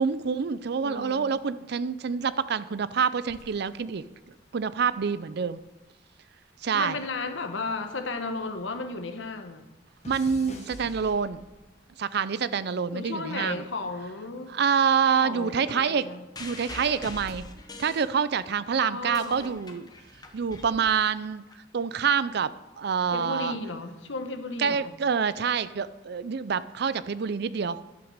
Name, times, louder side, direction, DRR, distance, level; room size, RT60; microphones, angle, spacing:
voice 1, 0.0-4.0 4.5-5.6 6.6-7.0 10.1-11.4 12.0-13.6 14.5-16.0 16.4-17.4 17.8-19.9 20.3-21.4 21.7-23.6 24.6-27.8, right 6 dB, 60° right, 16 dB, 0.5 m, -27 dB
voice 2, 0.8-1.3 6.7-9.7 12.9-14.6 15.2-16.3 18.8-19.6 23.1-24.9, left 3 dB, 85° left, 7 dB, 1.2 m, -34 dB
sound 1, 3.3-5.8 6.1-8.7 9.0-11.8 12.5-12.9, left 1 dB, 35° left, 1.5 m, -48 dB
sound 2, 16.3-18.6 18.9-21.5 22.4-22.5, left 2 dB, 20° left, 1.0 m, -43 dB
11.0 x 6.0 x 6.6 m, 1.1 s
head